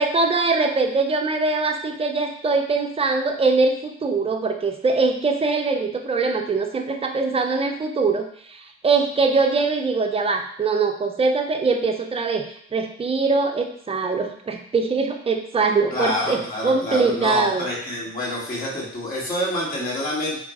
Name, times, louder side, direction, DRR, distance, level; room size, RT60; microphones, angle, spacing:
voice 1, 0.0-12.4 12.7-17.7, right 4 dB, 20° right, 4 dB, 0.5 m, -22 dB
voice 2, 15.9-20.4, left 1 dB, 30° left, -5 dB, 1.3 m, -27 dB
4.3 x 2.0 x 3.6 m, 0.65 s
cardioid pair, 90°, 30 cm